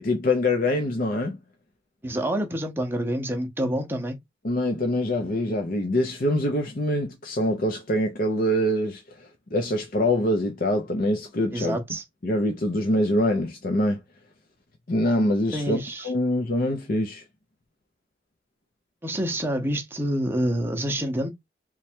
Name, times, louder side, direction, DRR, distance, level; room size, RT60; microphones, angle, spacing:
voice 1, 0.0-1.4 4.4-11.8 12.2-14.0 14.9-17.2, left 1 dB, 50° left, 0.6 m, -24 dB
voice 2, 2.0-4.2 11.5-12.0 15.5-16.1 19.0-21.3, right 1 dB, 10° right, 0.7 m, -27 dB
3.2 x 2.3 x 4.3 m
head